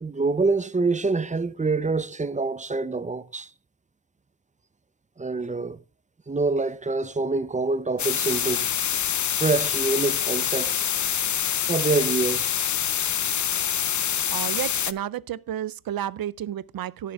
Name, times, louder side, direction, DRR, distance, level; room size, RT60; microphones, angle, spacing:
voice 1, 0.0-3.5 5.2-5.8 6.3-8.7 9.4-10.8 11.7-12.5, right 3 dB, 20° right, 0.5 m, -26 dB
sound 1, 8.0-14.9, left 9 dB, 60° left, 0.6 m, -26 dB
voice 2, 14.3-17.1, right 11 dB, 85° right, 0.5 m, -31 dB
16.5 x 6.8 x 3.4 m
cardioid pair, 75°, 34 cm